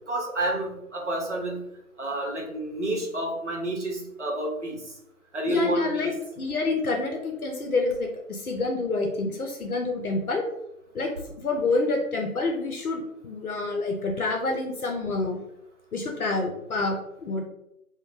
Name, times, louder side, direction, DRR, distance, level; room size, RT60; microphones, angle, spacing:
voice 1, 0.1-1.6 2.0-4.8 5.3-6.1, right 1 dB, 50° right, 0 dB, 0.7 m, -30 dB
voice 2, 5.5-10.4 10.9-11.1 11.4-15.4 15.9-17.4, left 3 dB, 70° left, 2 dB, 0.6 m, -27 dB
2.5 x 2.0 x 3.0 m, 0.84 s
figure-of-eight pair, 170°, 45 cm